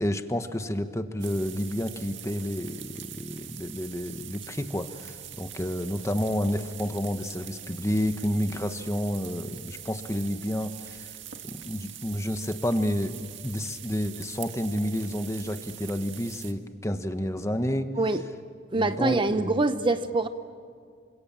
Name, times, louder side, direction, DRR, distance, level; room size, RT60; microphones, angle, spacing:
voice 1, 0.0-11.1 11.4-17.9 18.8-19.5, equal, 15° left, 8 dB, 1.3 m, -30 dB
sound 1, 1.2-16.5, right 11 dB, 90° right, 1.9 m, -43 dB
voice 2, 18.7-20.3, right 2 dB, 25° right, 10 dB, 0.8 m, -24 dB
28.0 x 26.0 x 7.5 m, 2.2 s
head